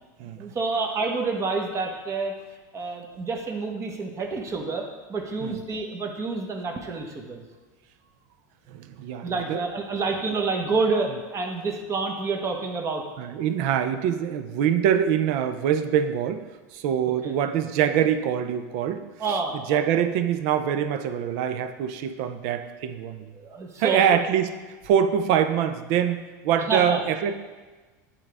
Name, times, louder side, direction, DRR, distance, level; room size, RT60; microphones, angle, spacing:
voice 1, 0.4-2.3 2.7-4.8 5.1-7.4 9.2-13.0 17.2-17.3 19.2-19.9 23.4-24.2 26.6-27.0, right 4 dB, 30° right, 2 dB, 1.0 m, -28 dB
voice 2, 8.7-9.6 13.2-16.4 16.7-23.3 23.8-24.5 24.8-27.3, right 9 dB, 60° right, 10 dB, 0.5 m, -24 dB
8.7 x 3.8 x 3.4 m, 1.3 s
supercardioid pair, 105°, 10 cm